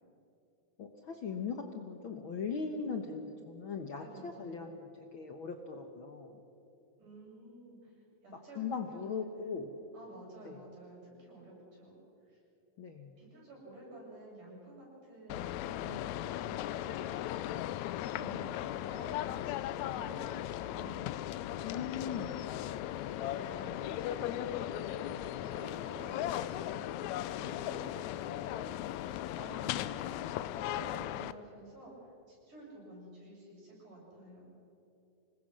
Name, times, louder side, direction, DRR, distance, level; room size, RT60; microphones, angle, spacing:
voice 1, 0.8-6.4 8.5-9.8 10.4-10.6 12.8-13.2 21.6-22.5, left 5 dB, 60° left, 4 dB, 1.4 m, -39 dB
voice 2, 4.0-4.7 7.0-7.9 8.2-9.6 9.9-12.0 12.3-12.4 13.2-21.7 22.0-22.4 23.1-29.0 29.4-34.5, right 2 dB, 80° right, -5 dB, 9.5 m, -51 dB
sound 1, 15.3-31.3, left 13 dB, 75° left, 1.8 m, -37 dB
26.0 x 20.5 x 6.4 m, 2.8 s
omnidirectional pair, 3.6 m